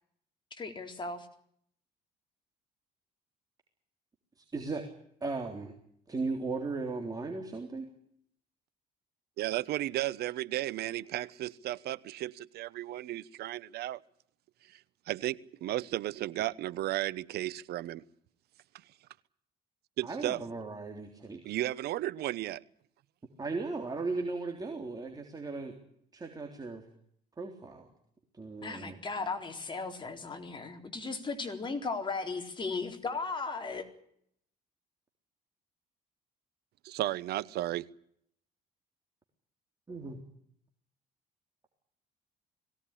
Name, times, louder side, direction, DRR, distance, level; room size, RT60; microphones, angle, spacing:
voice 1, 0.6-1.3 28.6-33.9, left 4 dB, 30° left, 3.9 m, -36 dB
voice 2, 4.4-4.8 5.2-5.7 6.1-7.9 20.0-21.4 23.4-25.8 26.1-26.8 27.4-27.9 28.3-29.0 39.9-40.2, right 3 dB, 20° right, 3.5 m, -37 dB
voice 3, 9.4-14.0 14.7-14.8 15.1-18.0 20.0-20.4 21.4-22.6 36.8-37.8, right 15 dB, 75° right, 1.0 m, -34 dB
21.5 x 17.5 x 10.0 m
cardioid pair, 110°, 17 cm